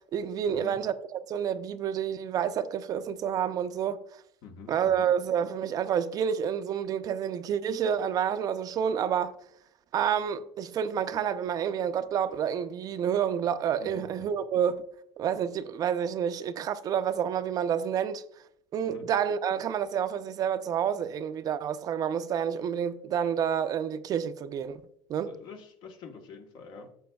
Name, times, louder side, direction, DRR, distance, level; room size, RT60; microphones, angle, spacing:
voice 1, 0.1-4.0 4.7-9.3 9.9-14.8 15.2-18.2 18.7-24.8 25.1-25.4, right 8 dB, 45° right, 0.5 m, -29 dB
voice 2, 4.4-5.1 13.8-14.1 18.8-19.1 25.3-26.9, left 5 dB, 60° left, 1.2 m, -46 dB
13.0 x 6.9 x 2.3 m
cardioid pair, 125°, 9 cm